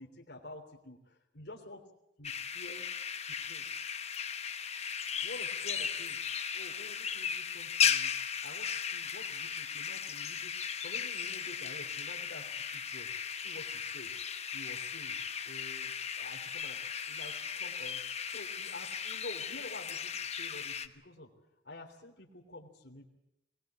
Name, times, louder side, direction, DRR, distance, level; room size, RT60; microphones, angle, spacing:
voice 1, 0.0-1.8 2.2-2.9 3.3-3.6 5.2-6.2 6.5-8.1 8.4-10.5 10.8-13.1 13.4-14.1 14.5-15.1 15.4-16.8 17.1-18.0 18.3-21.3 21.6-23.1, left 2 dB, 65° left, 1 dB, 3.3 m, -49 dB
sound 1, 2.2-20.9, left 7 dB, 35° left, 1.0 m, -36 dB
22.0 x 18.0 x 7.6 m, 0.85 s
head